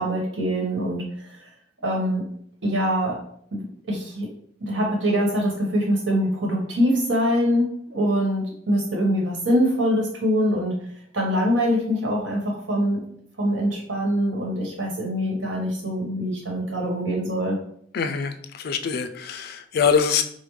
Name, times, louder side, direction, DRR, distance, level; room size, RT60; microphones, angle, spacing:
voice 1, 0.0-1.4 1.8-2.2 2.6-3.2 3.5-4.3 4.6-10.7 11.1-13.0 13.4-17.6, equal, 70° right, -2 dB, 1.3 m, -24 dB
voice 2, 17.9-20.2, left 6 dB, 50° left, 8 dB, 0.4 m, -24 dB
5.0 x 2.1 x 3.1 m, 0.65 s
head